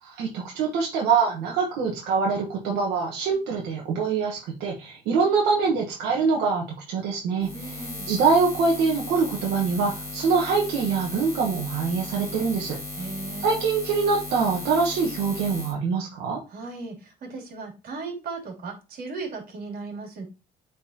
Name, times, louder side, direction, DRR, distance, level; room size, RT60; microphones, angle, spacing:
voice 1, 0.0-13.1 13.4-16.4, right 5 dB, 90° right, -1 dB, 1.3 m, -24 dB
Buzz, 7.4-15.7, left 1 dB, 15° left, 2.0 m, -36 dB
voice 2, 7.5-8.1 13.0-13.7 16.5-20.2, right 3 dB, 60° right, 0 dB, 3.1 m, -37 dB
8.6 x 4.0 x 2.9 m, 0.30 s
cardioid pair, 110°, 17 cm